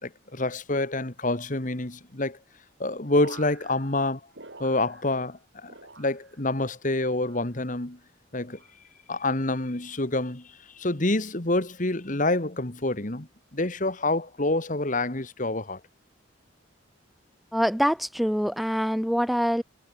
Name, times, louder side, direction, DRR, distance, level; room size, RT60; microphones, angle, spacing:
voice 1, 0.0-2.4 2.8-4.2 4.6-8.0 8.3-8.6 9.1-15.8, left 2 dB, 40° left, 2.0 m, -27 dB
sound 1, 3.1-5.4 5.6-6.5 7.0-7.7 8.3-8.8 9.6-10.0 11.0-11.3, right 3 dB, 65° right, 4.6 m, -48 dB
voice 2, 17.5-19.6, equal, ahead, 0.9 m, -25 dB
head